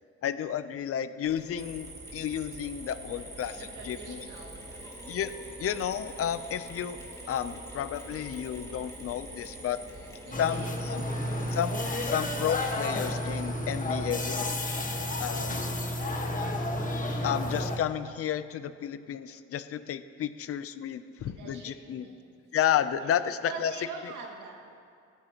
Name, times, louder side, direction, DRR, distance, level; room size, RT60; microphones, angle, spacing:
voice 1, 0.2-4.3 5.1-5.3 5.6-7.0 7.3-9.8 10.4-11.0 11.5-11.8 12.0-14.5 15.2-15.7 17.2-22.1 22.5-23.7, left 9 dB, 50° left, 13 dB, 0.6 m, -32 dB
Mechanisms, 1.2-13.6, left 1 dB, 10° left, 2.5 m, -48 dB
sound 1, 1.6-14.5, right 2 dB, 20° right, 1.2 m, -46 dB
voice 2, 3.5-4.8 9.9-10.8 15.5-16.1 21.2-22.3 23.0-24.7, right 4 dB, 80° right, 0 dB, 2.2 m, -45 dB
sound 2, 10.3-17.8, left 1 dB, 25° left, 1.4 m, -31 dB
21.0 x 9.3 x 2.9 m, 2.3 s
cardioid pair, 90°, 30 cm